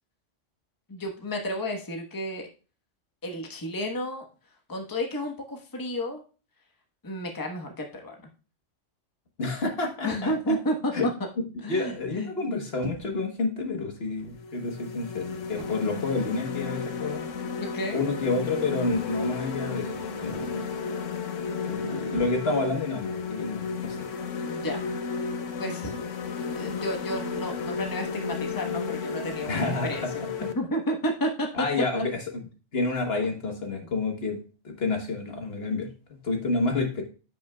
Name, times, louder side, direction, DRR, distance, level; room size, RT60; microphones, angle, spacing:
voice 1, 0.9-2.5 3.2-4.2 4.7-6.2 7.0-8.1 10.0-11.1 11.6-12.6 17.6-18.0 24.4-24.9 25.2-25.3 25.6-26.0 26.5-30.0 30.4-31.7 31.9-32.0, equal, 15° left, 2 dB, 1.1 m, -31 dB
voice 2, 9.4-10.6 10.9-11.1 11.7-17.3 17.9-20.6 21.6-24.1 29.5-30.1 31.5-32.2 32.7-34.4 34.6-35.9 36.2-37.0, left 3 dB, 55° left, 3 dB, 1.4 m, -29 dB
sound 1, 12.8-13.3 14.2-14.5 15.6-16.1 17.2-17.4 18.9-19.4 20.2-20.7 22.1-22.8, right 4 dB, 50° right, 1.2 m, -43 dB
sound 2, 13.6-13.8 14.4-30.5, left 5 dB, 75° left, 1.2 m, -33 dB
14.5 x 5.8 x 2.3 m, 0.36 s
omnidirectional pair, 1.3 m